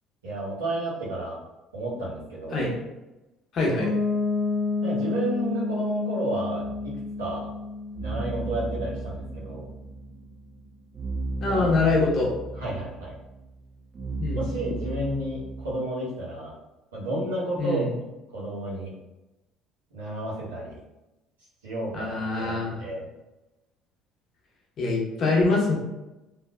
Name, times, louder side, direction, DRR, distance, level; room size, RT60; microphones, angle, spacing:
voice 1, 0.2-1.4 1.7-2.6 4.8-7.5 8.0-9.7 11.5-11.8 12.6-13.1 14.3-16.5 16.9-17.9 18.3-18.9 19.9-20.8 21.6-23.0, right 1 dB, 85° right, -8 dB, 1.1 m, -31 dB
voice 2, 3.5-3.9 11.4-12.3 14.2-14.4 17.6-17.9 21.9-22.8 24.8-25.7, left 3 dB, 55° left, -2 dB, 0.9 m, -24 dB
Piano, 3.8-9.5, left 3 dB, ahead, 1.1 m, -30 dB
sound 1, 6.6-15.7, right 3 dB, 40° right, 0.5 m, -36 dB
3.2 x 2.5 x 2.3 m, 1.0 s
hypercardioid pair, 60°, 0 cm